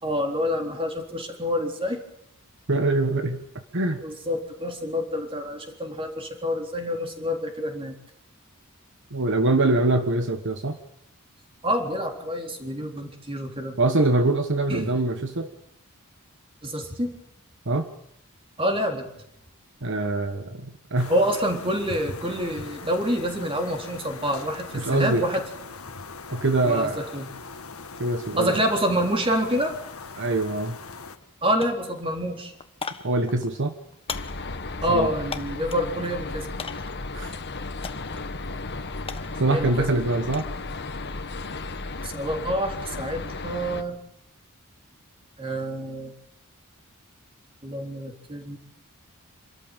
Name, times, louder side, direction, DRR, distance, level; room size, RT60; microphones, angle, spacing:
voice 1, 0.0-2.0 4.0-7.9 11.6-13.8 14.7-14.9 16.6-17.2 18.6-19.1 21.1-25.4 26.6-27.3 28.4-29.7 31.4-32.5 34.8-36.5 39.5-40.0 42.0-44.0 45.4-46.1 47.6-48.6, equal, 25° right, 4 dB, 3.8 m, -27 dB
voice 2, 2.7-3.4 3.7-4.0 9.1-10.8 13.8-15.5 17.7-17.9 19.8-21.1 24.7-25.2 26.3-27.1 28.0-28.6 30.2-30.8 33.0-33.7 34.9-35.1 37.1-37.3 39.4-40.5, right 2 dB, 60° right, 7 dB, 1.4 m, -24 dB
sound 1, 21.0-31.2, left 4 dB, 70° left, 1.7 m, -40 dB
sound 2, 30.8-31.3 31.6-35.9 36.6-37.1 37.8-38.3 38.6-40.6 40.9-41.3, left 5 dB, 25° left, 1.2 m, -39 dB
sound 3, 34.1-43.8, left 3 dB, 50° left, 1.5 m, -34 dB
27.5 x 13.5 x 9.1 m, 0.78 s
head